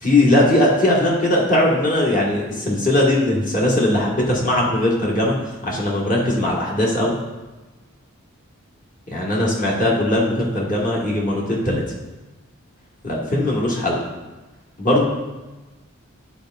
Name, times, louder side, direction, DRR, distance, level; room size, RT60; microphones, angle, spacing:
voice 1, 0.0-5.4 5.6-7.2 9.1-11.8 13.0-14.1 14.8-15.0, left 1 dB, 40° left, -4 dB, 1.4 m, -19 dB
9.8 x 4.2 x 2.4 m, 1.2 s
head